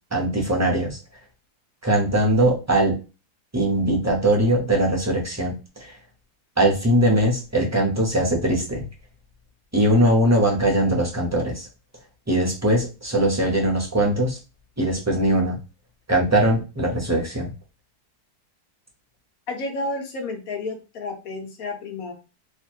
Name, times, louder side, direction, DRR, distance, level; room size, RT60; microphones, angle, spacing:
voice 1, 0.1-1.0 1.8-3.0 3.5-5.9 6.6-8.8 9.7-11.7 12.3-14.4 14.8-15.6 16.1-17.5, right 1 dB, 15° right, 0 dB, 0.6 m, -21 dB
voice 2, 19.5-22.1, left 2 dB, 65° left, 3 dB, 1.3 m, -31 dB
3.1 x 2.6 x 4.4 m, 0.30 s
omnidirectional pair, 1.7 m